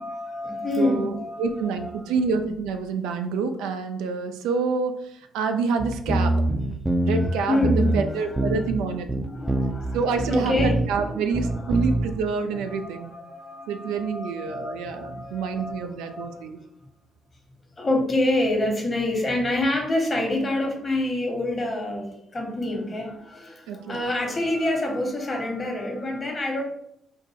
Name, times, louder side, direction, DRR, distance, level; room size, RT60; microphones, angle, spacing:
voice 1, 0.0-2.1 7.1-12.0 12.5-16.4 17.8-26.6, left 1 dB, 35° left, 1 dB, 1.2 m, -28 dB
voice 2, 0.8-6.4 7.0-9.1 9.9-13.1 13.7-16.6 23.7-24.0, right 5 dB, 75° right, 6 dB, 0.3 m, -27 dB
sound 1, 5.8-7.3 7.6-8.0 8.3-8.8 9.1-11.0 11.3-12.1, right 1 dB, 10° right, 0.5 m, -24 dB
4.2 x 2.1 x 3.5 m, 0.76 s
hypercardioid pair, 45°, 0 cm